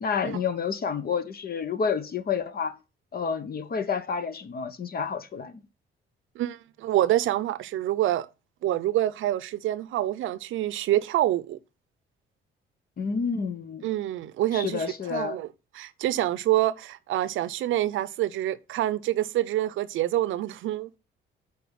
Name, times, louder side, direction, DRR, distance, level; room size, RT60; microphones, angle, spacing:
voice 1, 0.0-2.7 3.1-5.6 13.0-13.8 14.5-15.4, left 6 dB, 50° left, 1.2 m, -29 dB
voice 2, 6.4-8.3 8.6-11.6 13.8-15.5 15.8-21.0, right 14 dB, 80° right, 0.7 m, -26 dB
8.5 x 4.9 x 5.7 m
cardioid pair, 90°, 20 cm